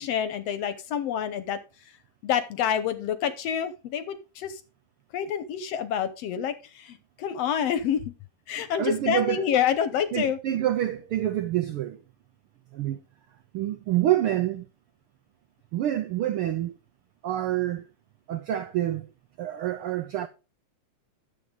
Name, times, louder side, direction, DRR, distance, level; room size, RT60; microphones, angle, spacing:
voice 1, 0.0-1.6 2.2-4.6 5.1-8.1 8.5-10.4, left 9 dB, 70° left, 1.7 m, -28 dB
voice 2, 8.8-9.4 10.1-12.0 12.7-13.0 13.5-14.7 15.7-16.8 17.2-17.8 18.3-19.1 19.4-20.3, right 12 dB, 85° right, 1.2 m, -27 dB
11.0 x 7.7 x 3.8 m
omnidirectional pair, 3.4 m